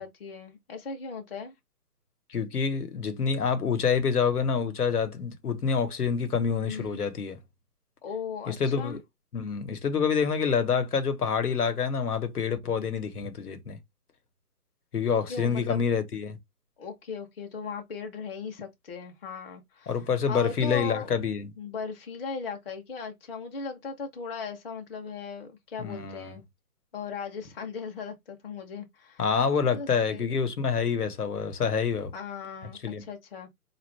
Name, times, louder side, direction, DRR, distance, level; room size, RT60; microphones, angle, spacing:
voice 1, 0.0-1.5 6.6-7.0 8.0-9.0 12.7-13.0 15.3-15.8 16.8-20.0 20.3-21.1 21.6-26.4 26.9-29.2 29.7-30.4 32.1-33.5, left 5 dB, 35° left, 0.8 m, -38 dB
voice 2, 2.3-7.4 8.5-9.0 9.3-13.8 14.9-16.4 19.9-21.5 25.8-26.4 29.2-32.1 32.8-33.0, left 6 dB, 70° left, 1.0 m, -27 dB
4.3 x 2.4 x 3.2 m
hypercardioid pair, 150°, 47 cm